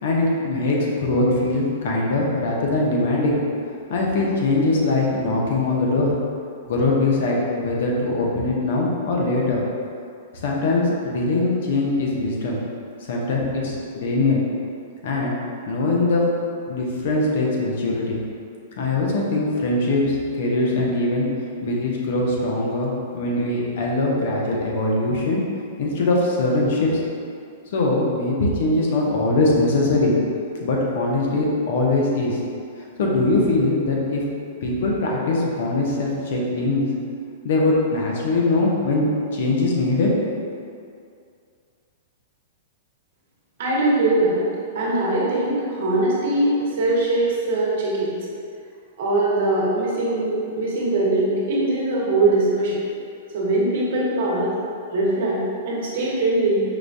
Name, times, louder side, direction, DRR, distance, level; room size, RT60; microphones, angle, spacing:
voice 1, 0.0-3.4 3.9-6.1 6.7-9.6 10.3-12.6 13.1-14.4 15.0-15.3 15.7-16.3 16.7-18.2 18.8-21.3 21.6-25.4 25.8-26.9 27.7-30.2 30.6-32.4 32.8-34.2 34.6-36.9 37.4-40.1, left 2 dB, 60° left, -3 dB, 0.7 m, -22 dB
voice 2, 43.6-44.5 44.7-48.1 49.0-52.8 53.3-54.5 54.9-55.4 55.7-56.6, right 2 dB, 60° right, -5 dB, 0.9 m, -21 dB
4.8 x 2.2 x 2.6 m, 2.4 s
hypercardioid pair, 160°, 0 cm